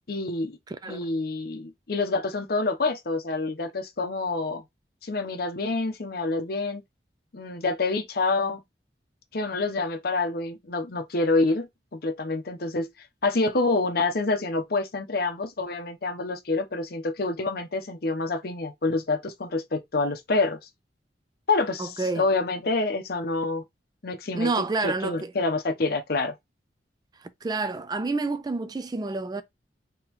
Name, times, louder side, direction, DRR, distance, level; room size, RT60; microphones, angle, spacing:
voice 1, 0.1-0.6 0.8-4.6 5.0-6.8 7.3-8.6 9.3-12.9 13.2-20.6 21.5-23.6 24.0-26.4, left 3 dB, 60° left, 0.7 m, -27 dB
voice 2, 0.7-1.1 21.8-22.2 24.3-25.3 27.4-29.4, right 3 dB, 25° right, 0.4 m, -28 dB
3.8 x 3.0 x 2.9 m
head